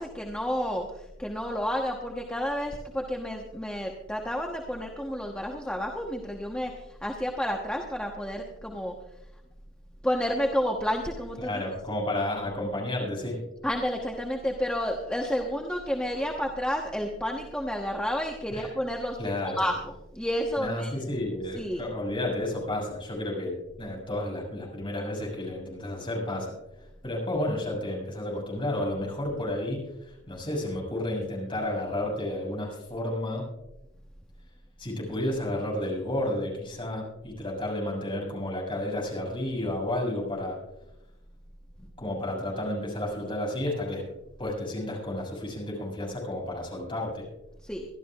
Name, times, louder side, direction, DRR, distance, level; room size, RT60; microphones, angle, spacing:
voice 1, 0.0-8.9 10.0-11.5 13.6-19.8 20.1-20.9 21.6-21.8 47.6-47.9, equal, 5° left, 0 dB, 1.1 m, -30 dB
voice 2, 11.4-13.4 18.5-18.7 19.2-19.6 20.6-33.5 34.8-40.6 42.0-44.0 44.4-47.3, left 1 dB, 25° left, -3 dB, 6.4 m, -31 dB
24.5 x 12.5 x 2.4 m, 0.93 s
head